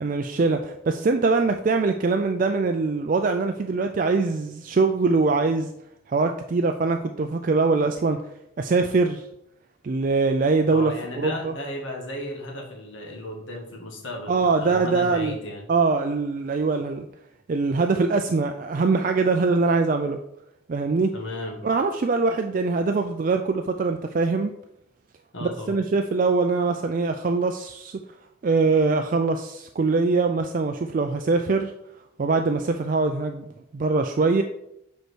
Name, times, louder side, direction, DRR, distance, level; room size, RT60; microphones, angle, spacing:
voice 1, 0.0-5.7 6.1-8.2 8.6-9.3 9.8-11.5 14.3-15.4 15.7-17.1 17.5-20.2 20.7-21.1 21.6-24.5 25.4-28.0 28.4-31.7 32.2-34.4, right 3 dB, 40° right, 5 dB, 0.3 m, -23 dB
voice 2, 10.7-15.7 21.1-21.6 25.3-25.8, left 1 dB, 70° left, 0 dB, 1.7 m, -35 dB
5.3 x 4.5 x 6.1 m, 0.82 s
head